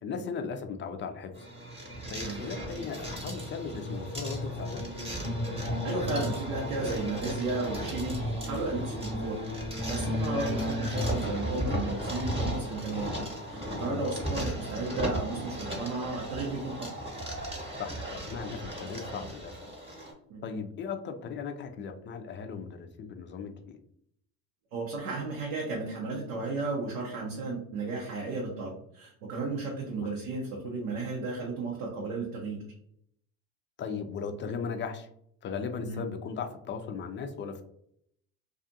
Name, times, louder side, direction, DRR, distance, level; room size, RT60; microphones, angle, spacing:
voice 1, 0.0-1.5 2.1-4.9 13.8-14.1 17.8-19.7 20.4-23.8 30.0-30.1 33.8-35.1 35.4-37.6, left 5 dB, 30° left, 7 dB, 0.4 m, -37 dB
sound 1, 1.3-20.1, equal, 15° right, 0.9 m, -34 dB
voice 2, 5.8-9.3 9.9-13.1 13.5-16.9 20.3-20.4 24.7-32.6 35.8-36.0, right 3 dB, 85° right, -2 dB, 0.7 m, -34 dB
2.4 x 2.4 x 2.6 m, 0.70 s
hypercardioid pair, 75°, 41 cm